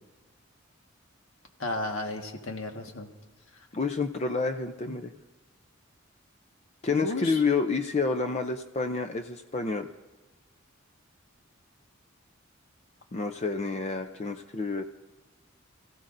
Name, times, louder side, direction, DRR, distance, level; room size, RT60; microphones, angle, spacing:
voice 1, 1.6-3.1 6.9-7.4, left 2 dB, 80° left, 3 dB, 1.6 m, -33 dB
voice 2, 3.7-5.1 6.8-9.9 13.1-14.8, left 4 dB, 30° left, 7 dB, 0.5 m, -29 dB
28.0 x 15.5 x 2.6 m, 1.2 s
head